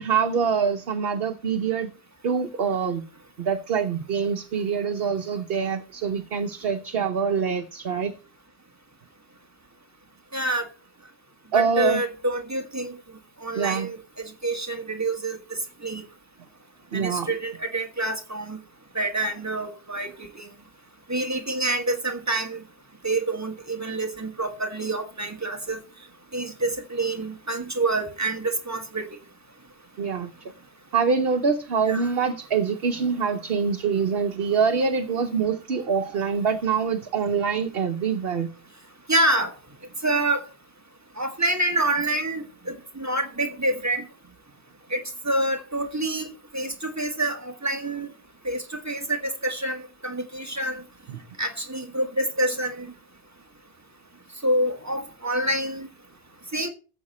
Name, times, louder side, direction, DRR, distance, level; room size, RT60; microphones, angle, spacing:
voice 1, 0.0-1.9 2.2-3.0 3.4-8.1 11.5-12.0 13.5-13.9 16.9-17.3 30.0-30.3 30.9-38.5 51.1-51.2, right 6 dB, 65° right, 1.1 m, -25 dB
voice 2, 10.3-10.6 11.5-13.0 13.4-15.4 15.8-16.0 16.9-18.6 18.9-20.1 20.4-20.5 21.1-22.6 23.0-25.8 26.3-29.0 31.8-32.1 39.1-39.5 40.0-40.4 41.2-44.1 44.9-48.1 48.4-50.8 51.4-52.9 54.4-55.9 56.5-56.7, right 2 dB, 15° right, 1.4 m, -27 dB
14.5 x 7.4 x 4.2 m
omnidirectional pair, 1.1 m